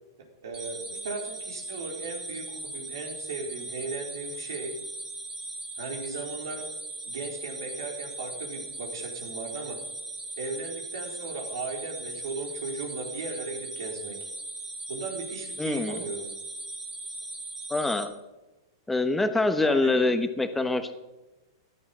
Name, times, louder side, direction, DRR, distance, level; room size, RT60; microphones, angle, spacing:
voice 1, 0.4-4.8 5.8-6.7 7.1-9.8 10.4-14.3 14.9-16.3 19.6-20.1, right 3 dB, 75° right, 1 dB, 4.1 m, -37 dB
sound 1, 0.5-18.0, right 2 dB, 20° right, 3.0 m, -39 dB
voice 2, 15.6-16.0 17.7-18.1 18.9-20.9, left 2 dB, 5° left, 8 dB, 1.2 m, -25 dB
15.0 x 11.0 x 5.5 m, 1.1 s
hypercardioid pair, 120°, 2 cm